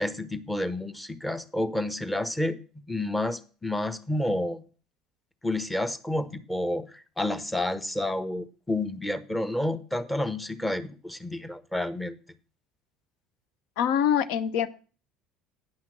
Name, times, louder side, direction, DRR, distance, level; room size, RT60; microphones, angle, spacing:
voice 1, 0.0-2.6 2.9-4.6 5.4-6.9 7.2-12.2, left 1 dB, 10° left, 12 dB, 1.0 m, -30 dB
voice 2, 13.8-14.7, left 9 dB, 65° left, 15 dB, 0.7 m, -24 dB
9.6 x 5.9 x 6.1 m, 0.37 s
hypercardioid pair, 65°, 0 cm